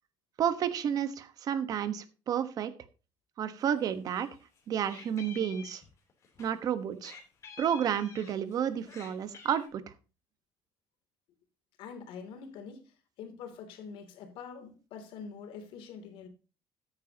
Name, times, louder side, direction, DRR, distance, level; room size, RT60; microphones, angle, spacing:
voice 1, 0.4-2.7 3.4-4.3 4.7-5.8 6.4-7.2 7.6-9.8, right 9 dB, 45° right, 1.2 m, -31 dB
Meow, 3.7-4.3 4.6-6.5 7.0-8.6 8.8-9.7, left 6 dB, 35° left, 3.2 m, -50 dB
voice 2, 11.8-16.3, left 6 dB, 80° left, 2.9 m, -45 dB
14.0 x 9.4 x 2.9 m
cardioid pair, 175°, 9 cm